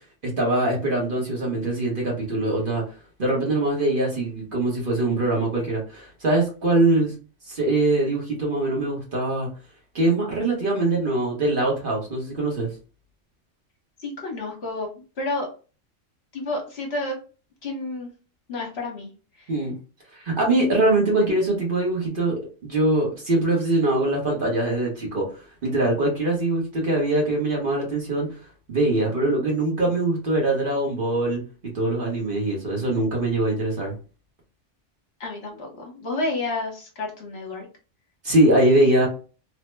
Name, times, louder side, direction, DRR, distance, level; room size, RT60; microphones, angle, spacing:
voice 1, 0.2-2.8 3.2-7.1 7.5-9.5 9.9-12.7 19.5-19.7 20.1-22.4 22.6-28.4 28.7-31.4 31.7-33.9 38.2-39.1, right 2 dB, 45° right, -2 dB, 1.1 m, -22 dB
voice 2, 14.0-15.5 16.3-17.2 17.6-18.1 18.5-19.1 35.2-37.7, left 2 dB, 55° left, 0 dB, 1.1 m, -30 dB
3.1 x 2.0 x 3.2 m, 0.35 s
omnidirectional pair, 1.3 m